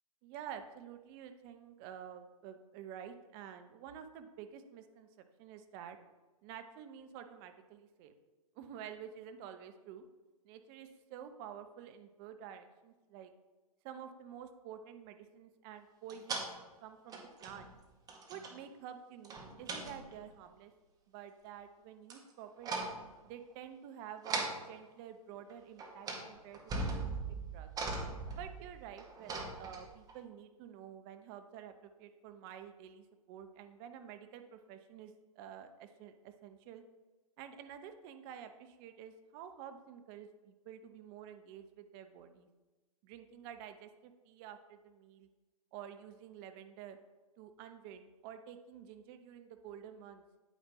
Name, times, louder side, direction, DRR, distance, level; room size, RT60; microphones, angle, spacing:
voice 1, 0.2-6.0 6.4-8.1 8.5-10.0 10.4-13.3 13.8-16.5 16.8-17.7 18.3-20.7 21.1-22.8 23.2-27.7 28.3-36.8 37.4-42.5 43.0-45.3 45.7-47.0 47.4-50.2, right 9 dB, 40° right, 8 dB, 0.9 m, -50 dB
sound 1, 16.1-16.5 17.1-17.8 18.1-18.6 19.2-20.2 22.1-22.3 22.6-23.1 24.2-24.6 25.5-25.6 25.8-26.3 26.5-30.1, right 3 dB, 20° right, 1.5 m, -39 dB
9.2 x 9.1 x 3.1 m, 1.2 s
figure-of-eight pair, 115°, 19 cm